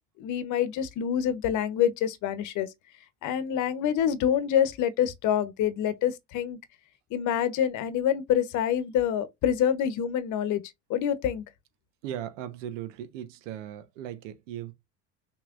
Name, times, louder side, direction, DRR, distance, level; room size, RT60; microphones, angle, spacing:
voice 1, 0.2-2.7 3.2-6.6 7.1-10.6 10.9-11.4, left 9 dB, 55° left, 1.0 m, -26 dB
voice 2, 12.0-14.7, right 11 dB, 75° right, 1.0 m, -38 dB
5.8 x 3.1 x 2.5 m
hypercardioid pair, 80°, 37 cm